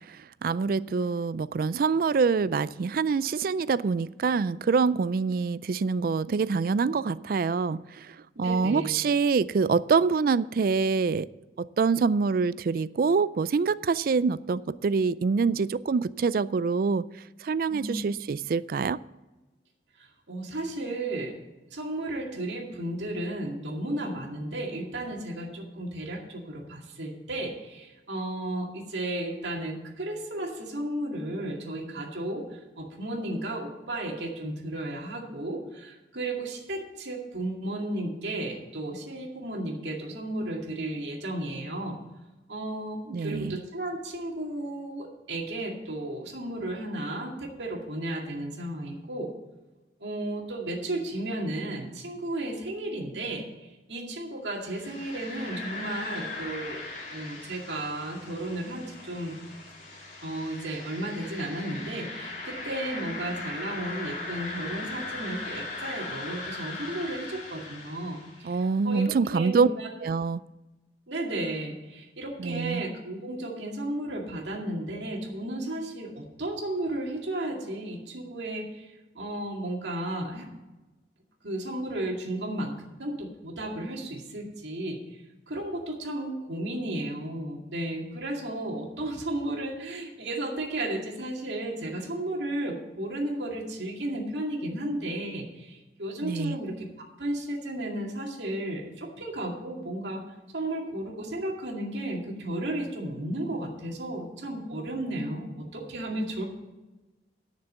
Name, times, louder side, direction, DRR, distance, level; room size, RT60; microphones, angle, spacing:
voice 1, 0.4-8.1 8.4-11.3 11.6-17.0 17.4-19.0 43.1-43.6 68.4-69.7 70.0-70.4 72.4-72.8 96.2-96.6, right 5 dB, 55° right, 18 dB, 0.3 m, -25 dB
voice 2, 8.4-8.9 17.7-18.0 20.0-21.4 21.7-42.0 42.5-49.3 50.0-56.8 57.1-59.4 60.2-69.9 71.1-80.5 81.4-82.7 83.0-85.0 85.5-96.9 97.2-100.2 100.5-106.5, right 1 dB, 80° right, 0 dB, 2.2 m, -34 dB
sound 1, 54.6-68.6, left 3 dB, 45° left, 2.8 m, -39 dB
10.5 x 6.7 x 7.3 m, 1.1 s
head